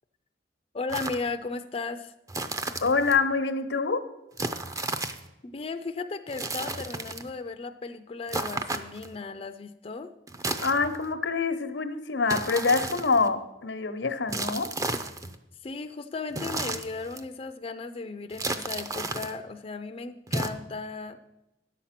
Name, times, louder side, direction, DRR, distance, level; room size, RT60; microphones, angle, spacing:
voice 1, 0.7-2.1 5.4-10.1 15.6-21.2, left 4 dB, 35° left, 7 dB, 0.4 m, -36 dB
sound 1, 0.9-1.3 2.3-3.2 4.4-5.3 6.3-7.3 8.3-9.2 10.3-11.1 12.3-13.3 14.3-15.4 16.3-17.2 18.3-19.3 20.3-20.5, right 2 dB, 20° right, 0.5 m, -33 dB
voice 2, 2.8-4.0 10.6-14.7, left 4 dB, 90° left, 9 dB, 0.9 m, -26 dB
10.5 x 7.2 x 5.8 m, 0.92 s
head